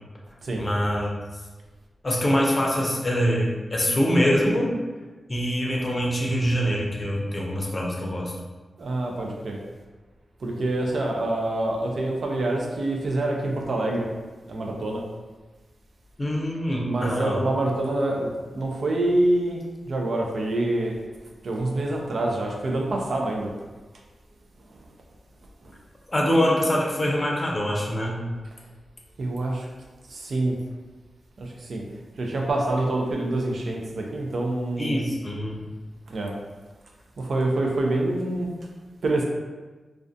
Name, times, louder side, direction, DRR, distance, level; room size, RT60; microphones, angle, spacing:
voice 1, 0.6-1.1 2.0-4.8 5.3-8.3 16.2-17.4 26.1-28.2 34.8-35.6, equal, 35° left, -2 dB, 0.5 m, -24 dB
voice 2, 8.8-9.6 10.4-14.1 14.5-15.0 16.9-18.3 18.5-21.0 21.4-23.5 24.7-24.8 25.6-25.7 29.2-29.7 30.1-30.6 31.4-31.9 32.2-35.0 36.1-36.3 37.2-38.5 39.0-39.2, right 2 dB, 70° right, 0 dB, 0.4 m, -26 dB
2.4 x 2.2 x 2.5 m, 1.3 s
cardioid pair, 75°, 0 cm